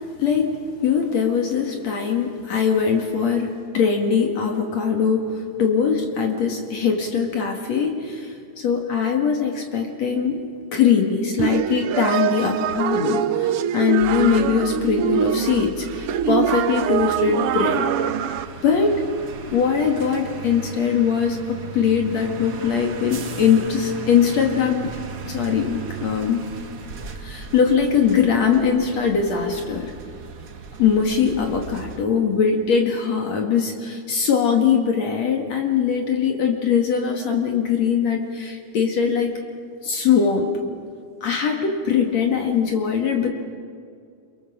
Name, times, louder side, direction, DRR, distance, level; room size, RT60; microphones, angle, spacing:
voice 1, 0.2-10.4 10.7-17.9 18.6-19.0 19.5-24.9 25.3-26.4 27.2-29.9 30.8-39.3 39.8-40.5 41.2-43.3, left 6 dB, 60° left, 2 dB, 3.1 m, -21 dB
sound 1, 11.4-18.4, right 10 dB, 85° right, 1.2 m, -24 dB
sound 2, 14.0-32.0, right 4 dB, 55° right, 0.9 m, -37 dB
28.0 x 24.0 x 7.3 m, 2.3 s
omnidirectional pair, 3.5 m